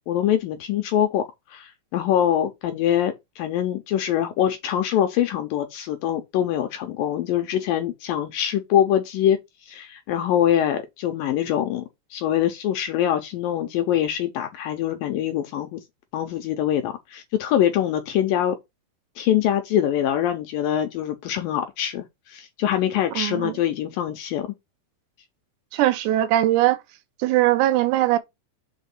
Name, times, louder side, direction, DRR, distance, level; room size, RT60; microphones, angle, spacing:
voice 1, 0.1-1.2 1.5-9.4 9.6-11.8 12.1-15.8 16.1-18.6 19.2-24.5, left 10 dB, 75° left, 2.1 m, -24 dB
voice 2, 23.2-23.5 25.7-26.8 27.2-28.2, right 14 dB, 85° right, 3.1 m, -20 dB
6.3 x 4.5 x 5.9 m
omnidirectional pair, 4.8 m